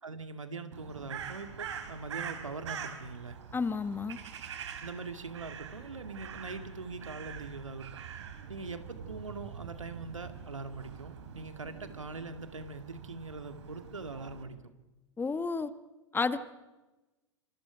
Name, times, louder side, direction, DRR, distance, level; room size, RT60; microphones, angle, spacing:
voice 1, 0.0-3.4 4.8-7.9 8.5-14.6, right 3 dB, 85° right, 8 dB, 2.1 m, -42 dB
Crow, 0.7-14.4, right 7 dB, 65° right, 3.8 m, -44 dB
voice 2, 3.5-4.2 15.2-15.7 16.1-16.4, left 4 dB, 15° left, 13 dB, 1.3 m, -31 dB
28.0 x 27.0 x 5.1 m, 1.1 s
figure-of-eight pair, 95°, 16 cm